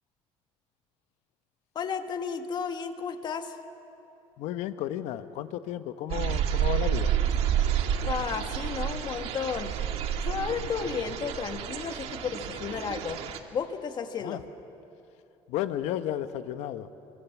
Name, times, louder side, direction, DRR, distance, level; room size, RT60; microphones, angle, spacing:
voice 1, 1.7-3.6 8.0-9.7 10.2-13.2 13.5-14.4, left 6 dB, 40° left, 7 dB, 1.6 m, -33 dB
voice 2, 4.4-7.1 14.2-14.4 15.5-16.9, left 12 dB, 85° left, 11 dB, 1.1 m, -33 dB
sound 1, 6.1-13.4, right 9 dB, 65° right, 1.7 m, -29 dB
25.5 x 25.0 x 7.3 m, 2.9 s
cardioid pair, 130°, 11 cm